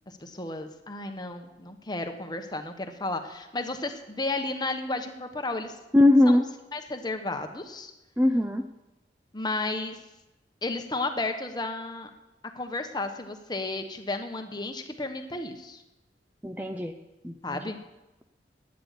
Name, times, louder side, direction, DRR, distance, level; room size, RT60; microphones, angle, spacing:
voice 1, 0.1-5.8 6.2-6.4 6.7-7.9 9.3-10.0 10.6-12.1 12.5-15.8 17.4-17.8, left 2 dB, 25° left, 6 dB, 1.2 m, -33 dB
voice 2, 5.9-6.4 8.2-8.6 16.4-16.9 17.2-17.6, left 1 dB, 10° right, 5 dB, 0.6 m, -21 dB
12.5 x 9.9 x 8.4 m, 1.0 s
head